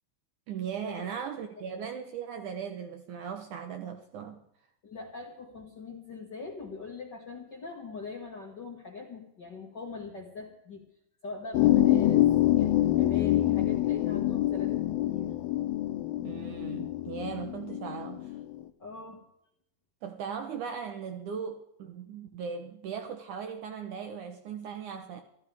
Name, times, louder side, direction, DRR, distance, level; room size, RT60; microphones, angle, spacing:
voice 1, 0.5-4.4 16.2-18.4 20.0-25.2, right 7 dB, 70° right, 2.0 m, -38 dB
voice 2, 4.8-10.8 11.2-15.3 18.8-19.2, left 4 dB, 40° left, 1.6 m, -42 dB
sound 1, 11.5-18.5, left 14 dB, 75° left, 2.4 m, -26 dB
25.5 x 14.5 x 3.5 m
omnidirectional pair, 4.4 m